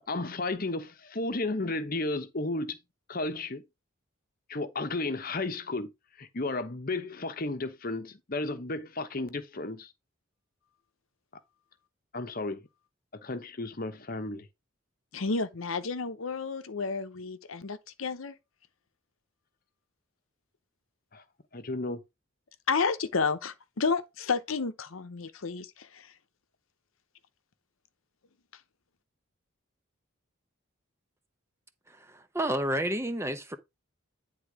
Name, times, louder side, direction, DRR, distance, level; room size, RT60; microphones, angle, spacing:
voice 1, 0.1-2.8 3.1-3.6 4.5-5.9 6.2-9.9 12.1-12.6 13.1-14.5 21.1-21.2 21.5-22.0, left 2 dB, 45° left, 1.0 m, -33 dB
voice 2, 15.1-18.4 22.7-26.1, left 4 dB, 80° left, 0.8 m, -31 dB
voice 3, 31.9-33.6, right 1 dB, 15° right, 0.7 m, -30 dB
10.0 x 3.7 x 4.8 m
head